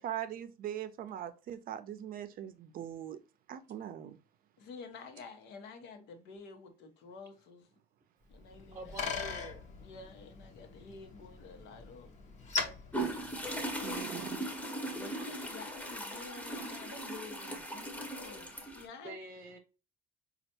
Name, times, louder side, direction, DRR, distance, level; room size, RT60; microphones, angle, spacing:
voice 1, 0.0-3.2 3.5-4.2 13.8-14.4, right 11 dB, 60° right, 0.5 m, -41 dB
voice 2, 4.6-7.7 8.3-9.2 9.8-12.1 14.9-19.2, left 4 dB, 85° left, 0.9 m, -49 dB
Bicycle, 8.3-14.0, left 4 dB, 45° left, 0.8 m, -41 dB
voice 3, 8.7-9.7 19.0-19.6, right 2 dB, 20° right, 0.8 m, -46 dB
sound 1, 12.9-18.9, right 1 dB, 10° left, 0.8 m, -39 dB
4.3 x 2.4 x 2.8 m
cardioid pair, 110°, 17 cm